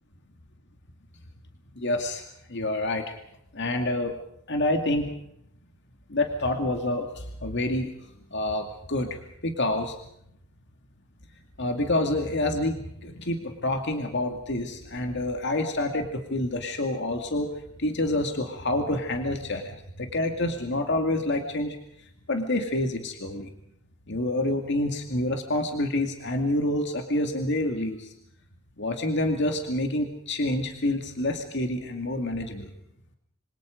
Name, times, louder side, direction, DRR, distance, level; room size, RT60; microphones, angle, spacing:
voice 1, 1.8-3.1 3.5-4.1 4.5-5.2 6.1-10.0 11.6-17.5 17.8-23.5 24.1-28.1 28.8-32.7, left 1 dB, 55° left, 5 dB, 2.3 m, -28 dB
26.5 x 26.0 x 5.2 m, 0.75 s
head